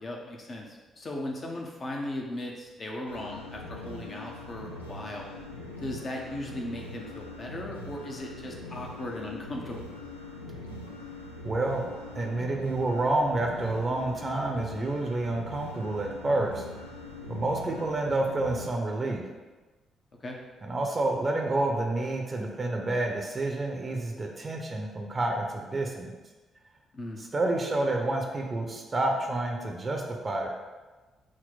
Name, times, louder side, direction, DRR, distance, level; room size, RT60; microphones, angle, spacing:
voice 1, 0.0-5.3 5.8-9.9 20.2-20.4 26.9-27.2, left 1 dB, 40° left, 0 dB, 0.7 m, -37 dB
sound 1, 3.1-18.7, left 2 dB, 90° left, 0.4 m, -42 dB
voice 2, 11.4-11.9 12.2-16.6 17.3-19.2 20.6-26.2 27.2-30.5, right 2 dB, 30° right, 1 dB, 0.7 m, -29 dB
6.2 x 2.1 x 3.9 m, 1.3 s
figure-of-eight pair, 40°, 0 cm